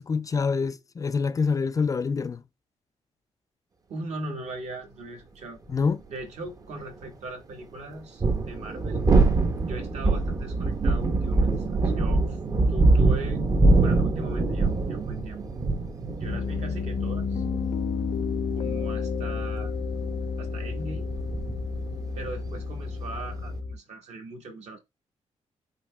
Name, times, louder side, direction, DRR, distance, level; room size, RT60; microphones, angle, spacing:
voice 1, 0.0-2.4 5.7-6.0, left 5 dB, 30° left, 0.3 m, -26 dB
voice 2, 3.9-5.6 6.1-9.0 9.6-12.4 12.7-13.5 13.8-15.5 16.2-17.4 18.5-19.7 20.4-21.1 22.1-24.8, right 2 dB, 65° right, 1.3 m, -39 dB
sound 1, 5.8-5.9 8.0-23.6, right 3 dB, 30° right, 0.6 m, -24 dB
Piano, 16.3-23.8, left 5 dB, 75° left, 0.6 m, -31 dB
8.4 x 2.8 x 2.2 m
cardioid pair, 135°, 12 cm